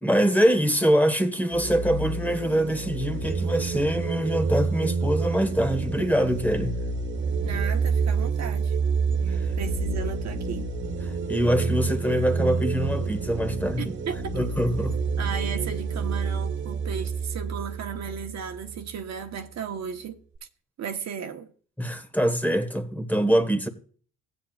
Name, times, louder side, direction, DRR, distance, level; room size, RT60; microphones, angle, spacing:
voice 1, 0.0-6.8 9.4-9.5 11.0-13.9 14.3-15.0 21.8-23.7, equal, 5° left, 1.5 m, -24 dB
sound 1, 1.5-18.9, right 4 dB, 40° right, 1.2 m, -28 dB
voice 2, 7.4-8.8 9.2-10.7 13.8-14.2 15.2-20.2 20.8-21.5, right 7 dB, 60° right, 1.2 m, -35 dB
15.5 x 9.1 x 2.4 m
cardioid pair, 90°, 30 cm